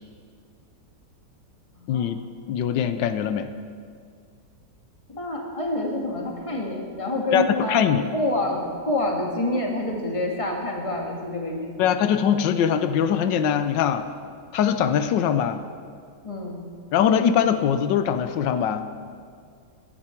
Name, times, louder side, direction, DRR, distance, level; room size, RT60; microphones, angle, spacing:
voice 1, 1.9-2.2 2.5-3.5 7.3-8.0 11.8-14.1 14.5-15.6 16.9-18.9, left 8 dB, 85° left, 10 dB, 1.4 m, -22 dB
voice 2, 5.1-11.9 16.2-16.6, left 1 dB, 20° left, 0 dB, 1.8 m, -27 dB
15.5 x 12.0 x 4.5 m, 2.1 s
omnidirectional pair, 1.9 m